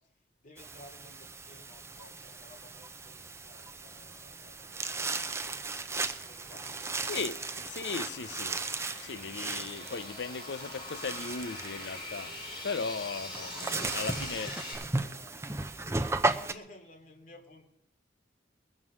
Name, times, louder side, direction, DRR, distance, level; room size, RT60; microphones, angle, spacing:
voice 1, 0.4-5.9 6.2-6.9 13.5-15.4 16.2-17.6, left 1 dB, 45° left, 3.0 m, -56 dB
sound 1, 0.6-16.5, right 3 dB, 15° right, 0.6 m, -36 dB
sound 2, 3.9-14.7, left 2 dB, 25° left, 6.5 m, -45 dB
voice 2, 7.1-7.4 7.7-8.6 9.0-12.4 12.6-14.5, left 4 dB, 70° left, 0.6 m, -37 dB
21.0 x 7.5 x 6.1 m
head